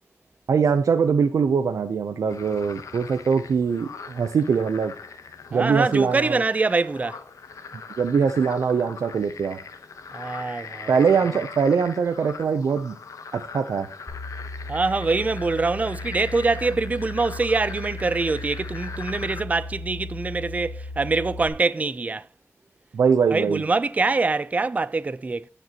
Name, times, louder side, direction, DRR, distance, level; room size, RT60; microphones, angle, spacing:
voice 1, 0.5-4.9 5.5-6.4 8.0-9.6 10.9-13.0 13.3-13.9 22.9-23.6, right 6 dB, 90° right, 0.5 m, -22 dB
sound 1, 2.3-19.4, left 5 dB, 85° left, 0.9 m, -41 dB
voice 2, 5.5-7.2 10.1-11.0 14.7-22.3 23.3-25.5, right 3 dB, 30° right, 0.4 m, -24 dB
sound 2, 14.1-21.5, left 2 dB, ahead, 2.6 m, -36 dB
15.5 x 5.1 x 2.9 m
wide cardioid pair, 110°, 5 cm